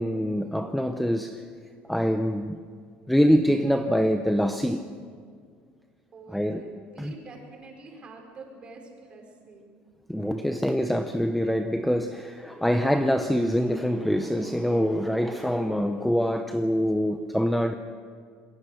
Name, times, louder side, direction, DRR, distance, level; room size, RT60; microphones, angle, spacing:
voice 1, 0.0-1.4 1.9-2.6 3.1-4.9 6.3-6.6 7.0-7.1 10.1-17.7, equal, ahead, 0.7 m, -25 dB
voice 2, 6.1-9.7, right 3 dB, 25° right, 5.1 m, -46 dB
27.5 x 21.5 x 6.5 m
cardioid pair, 160°, 4 cm